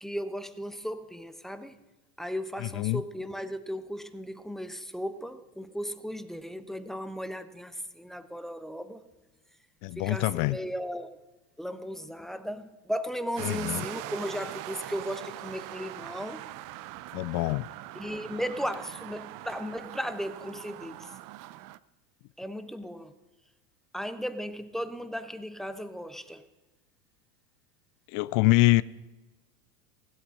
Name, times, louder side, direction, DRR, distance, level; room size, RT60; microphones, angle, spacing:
voice 1, 0.0-1.8 2.2-9.0 10.0-11.2 11.6-16.5 17.9-21.1 22.4-23.1 23.9-26.5, equal, ahead, 0.9 m, -36 dB
voice 2, 2.6-3.0 9.8-10.6 13.4-13.8 17.1-17.7 28.1-28.8, left 20 dB, 40° left, 0.4 m, -25 dB
sound 1, 13.4-21.8, right 16 dB, 40° right, 0.6 m, -42 dB
16.0 x 12.0 x 6.3 m
hypercardioid pair, 100°, 50 cm